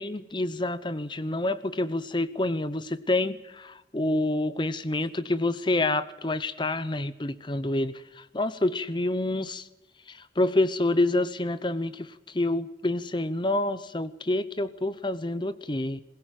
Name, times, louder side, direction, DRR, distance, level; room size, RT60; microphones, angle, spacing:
voice 1, 0.0-9.7 10.1-16.0, left 2 dB, 25° left, 15 dB, 0.8 m, -28 dB
21.0 x 18.0 x 9.3 m, 0.90 s
head